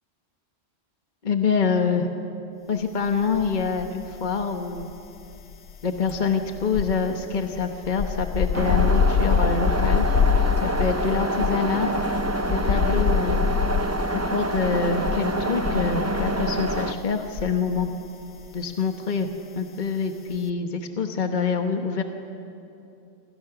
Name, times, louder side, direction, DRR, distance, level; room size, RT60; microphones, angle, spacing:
voice 1, 1.2-2.1 2.7-4.9 5.8-10.1 10.6-11.9 12.5-13.4 14.1-17.9 18.5-19.3 19.6-22.0, left 5 dB, 45° left, 5 dB, 1.3 m, -26 dB
sound 1, 3.3-4.1 4.4-17.9 18.2-18.5, left 6 dB, 85° left, 1.1 m, -26 dB
sound 2, 8.5-16.9, right 2 dB, 15° right, 0.7 m, -27 dB
27.5 x 26.5 x 5.9 m, 2.7 s
omnidirectional pair, 1.1 m